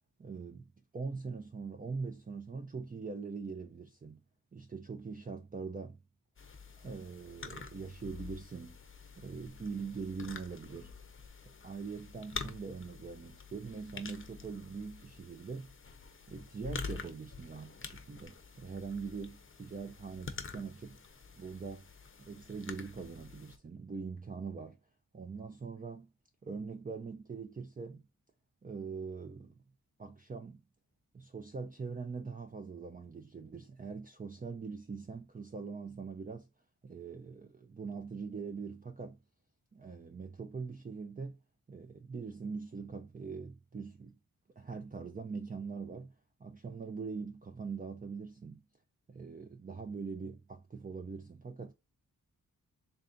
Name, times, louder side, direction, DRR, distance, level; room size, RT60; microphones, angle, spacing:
voice 1, 0.2-4.2 4.5-6.0 6.8-8.8 9.2-10.9 11.5-15.7 16.3-21.0 21.4-21.9 22.2-24.8 25.1-26.1 26.4-28.0 28.6-29.5 30.0-30.6 31.1-36.5 36.8-39.2 39.7-41.4 41.7-44.1 44.6-46.1 46.4-48.6 49.1-51.7, right 5 dB, 25° right, 0.5 m, -42 dB
(Finger) Nuts crack, 6.4-23.6, left 5 dB, 40° left, 0.7 m, -47 dB
3.3 x 2.6 x 3.7 m
cardioid pair, 65°, 33 cm